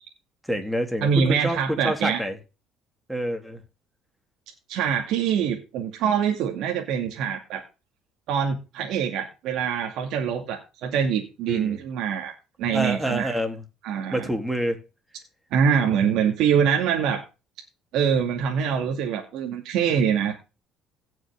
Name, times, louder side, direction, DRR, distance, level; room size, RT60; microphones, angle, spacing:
voice 1, 0.5-1.6 1.8-2.4 3.1-3.6 11.5-11.8 12.7-13.6 14.1-14.8, equal, 5° right, 2.8 m, -27 dB
voice 2, 1.0-2.2 4.7-7.6 8.3-12.3 12.6-13.4 13.8-14.2 15.5-17.2 17.9-20.3, right 7 dB, 70° right, 2.4 m, -24 dB
17.0 x 6.3 x 3.5 m
cardioid pair, 125°, 0 cm